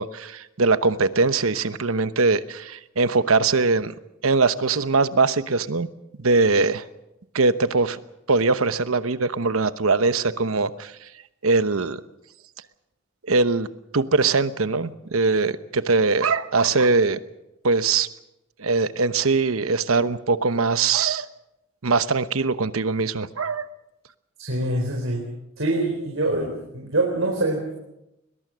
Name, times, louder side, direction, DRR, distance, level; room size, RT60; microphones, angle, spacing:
voice 1, 0.0-3.9 4.2-5.9 6.2-6.8 7.3-8.0 8.3-10.9 11.4-12.0 13.3-13.7 13.9-17.2 17.6-18.1 18.6-21.2 21.8-23.7, right 4 dB, 90° right, 13 dB, 1.0 m, -21 dB
voice 2, 24.4-25.3 25.6-27.7, right 2 dB, 70° right, 1 dB, 4.0 m, -24 dB
21.5 x 21.5 x 6.3 m, 0.90 s
head